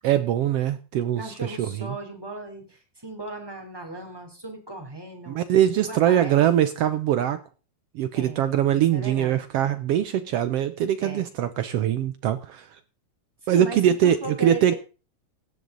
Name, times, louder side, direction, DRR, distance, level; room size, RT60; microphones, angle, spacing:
voice 1, 0.0-1.9 5.3-7.4 7.9-12.7 13.5-14.7, right 10 dB, 80° right, 11 dB, 1.3 m, -22 dB
voice 2, 1.2-5.4 5.9-6.4 8.1-8.4 8.7-9.4 11.0-11.2 13.4-14.8, right 3 dB, 5° right, 2 dB, 3.3 m, -37 dB
17.0 x 11.0 x 3.9 m, 0.34 s
omnidirectional pair, 3.6 m